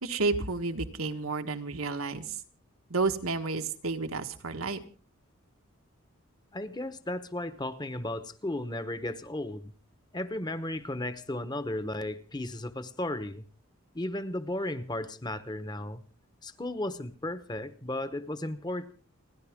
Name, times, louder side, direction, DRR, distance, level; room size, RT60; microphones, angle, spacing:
voice 1, 0.0-2.4 2.9-4.8, right 3 dB, 85° right, 1.6 m, -31 dB
voice 2, 6.5-9.7 10.1-13.4 13.9-16.0 16.4-18.9, left 1 dB, 20° left, 1.0 m, -35 dB
30.0 x 11.5 x 3.6 m
head